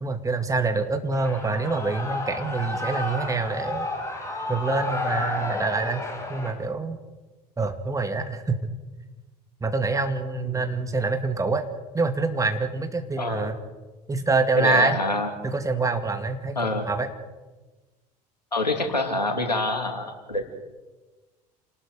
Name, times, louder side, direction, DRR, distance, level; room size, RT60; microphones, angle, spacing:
voice 1, 0.0-3.9 4.5-6.0 6.3-7.0 7.6-8.7 9.6-11.7 11.9-13.6 14.1-15.0 15.4-17.1, right 3 dB, 15° right, 7 dB, 2.2 m, -26 dB
Shout / Cheering, 1.1-6.5, left 2 dB, 15° left, 6.1 m, -31 dB
voice 2, 13.2-13.5 14.6-15.3 16.6-16.9 18.5-20.5, left 2 dB, 90° left, 5 dB, 2.5 m, -26 dB
28.5 x 19.5 x 5.2 m, 1.2 s
figure-of-eight pair, 70°, 21 cm